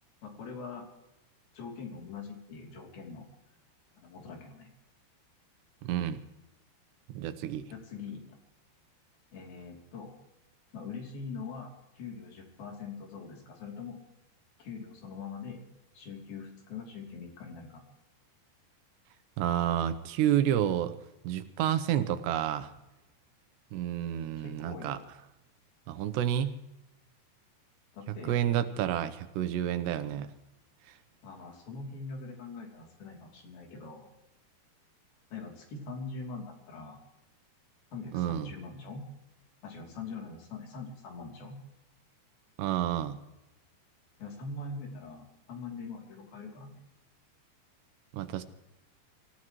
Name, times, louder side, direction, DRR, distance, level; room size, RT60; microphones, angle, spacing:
voice 1, 0.2-0.9 1.5-3.3 4.0-4.7 7.7-8.4 9.3-10.1 10.7-14.0 14.6-15.7 15.9-17.8 24.4-25.0 27.9-28.4 31.2-34.1 35.3-37.0 37.9-39.0 39.6-41.6 44.2-46.8, left 4 dB, 60° left, 1 dB, 4.7 m, -43 dB
voice 2, 5.8-6.2 7.1-7.7 19.4-20.9 21.2-22.7 23.7-25.0 25.9-26.6 28.3-30.3 38.1-38.5 42.6-43.2 48.1-48.4, right 11 dB, 80° right, 11 dB, 3.0 m, -29 dB
26.5 x 16.0 x 3.1 m, 0.94 s
omnidirectional pair, 5.0 m